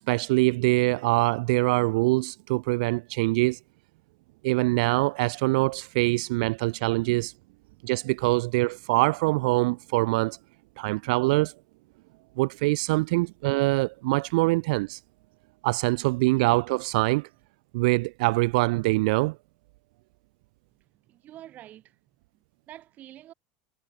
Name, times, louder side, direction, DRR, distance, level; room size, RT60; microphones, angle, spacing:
voice 1, 0.1-3.6 4.4-7.3 7.8-10.4 10.8-11.5 12.4-15.0 15.6-17.3 17.7-19.4, right 23 dB, 85° right, 0.5 m, -24 dB
voice 2, 20.9-23.3, right 13 dB, 40° right, 8.0 m, -48 dB
cardioid pair, 145°, 4 cm